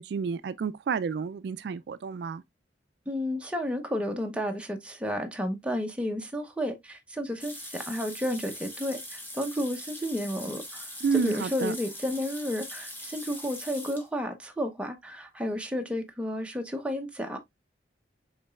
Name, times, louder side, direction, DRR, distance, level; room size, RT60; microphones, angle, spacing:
voice 1, 0.0-2.4 11.0-11.7, right 6 dB, 65° right, 0.3 m, -30 dB
voice 2, 3.1-17.4, left 1 dB, 5° right, 0.7 m, -32 dB
sound 1, 7.4-14.1, left 1 dB, 10° left, 1.0 m, -42 dB
5.2 x 3.9 x 2.3 m
head